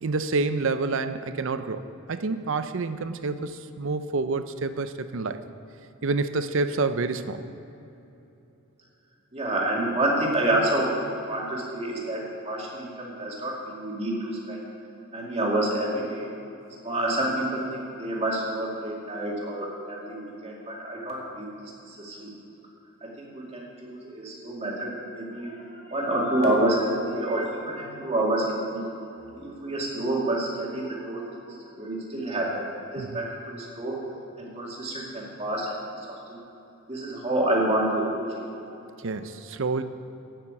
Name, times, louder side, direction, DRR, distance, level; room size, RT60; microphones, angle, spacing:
voice 1, 0.0-1.8 2.1-5.4 6.0-7.4 33.0-33.2 39.0-39.8, right 3 dB, 60° right, 11 dB, 0.5 m, -28 dB
voice 2, 9.3-14.7 15.1-16.3 16.8-21.5 21.9-22.3 23.0-28.8 29.3-32.6 32.9-34.0 34.4-36.4 36.9-38.4, right 1 dB, 30° right, -3 dB, 2.2 m, -28 dB
8.6 x 8.6 x 8.3 m, 2.9 s
head